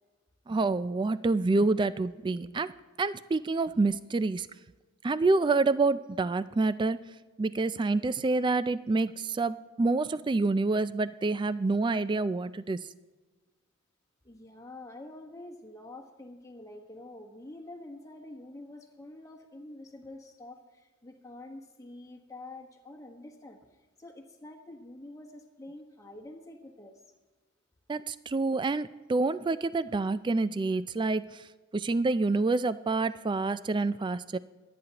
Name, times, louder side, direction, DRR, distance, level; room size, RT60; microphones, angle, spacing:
voice 1, 0.5-2.7 3.0-4.5 5.0-7.0 7.4-12.8 27.9-31.4 31.7-34.4, right 3 dB, 20° right, 15 dB, 0.3 m, -27 dB
voice 2, 14.2-23.6 24.0-27.0, left 2 dB, 15° left, 1 dB, 1.3 m, -47 dB
26.0 x 9.4 x 2.9 m, 1.3 s
head